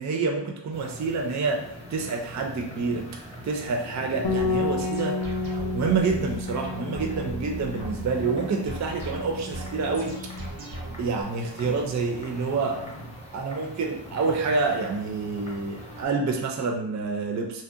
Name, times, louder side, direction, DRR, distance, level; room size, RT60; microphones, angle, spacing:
voice 1, 0.0-1.6 1.9-3.0 3.4-5.2 5.7-10.1 11.0-12.8 13.3-17.6, right 4 dB, 40° right, 2 dB, 0.4 m, -27 dB
sound 1, 0.7-16.1, equal, 15° left, 0.8 m, -43 dB
Bass guitar, 4.2-10.5, left 3 dB, 60° left, 0.5 m, -32 dB
sound 2, 4.4-11.2, right 2 dB, 85° right, 0.7 m, -38 dB
2.7 x 2.1 x 2.4 m, 0.75 s
wide cardioid pair, 50°, 45 cm